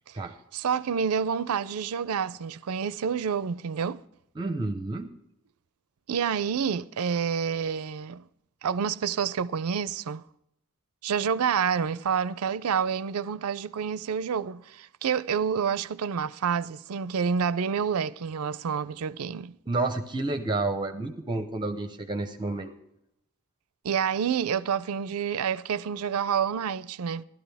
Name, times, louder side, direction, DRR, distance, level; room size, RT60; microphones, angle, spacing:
voice 1, 0.5-4.0 6.1-8.2 8.6-10.2 11.0-19.6 23.8-27.2, right 7 dB, 75° right, 0.4 m, -28 dB
voice 2, 4.4-5.1 19.7-22.7, right 2 dB, 20° right, 0.7 m, -30 dB
14.5 x 12.5 x 3.4 m
head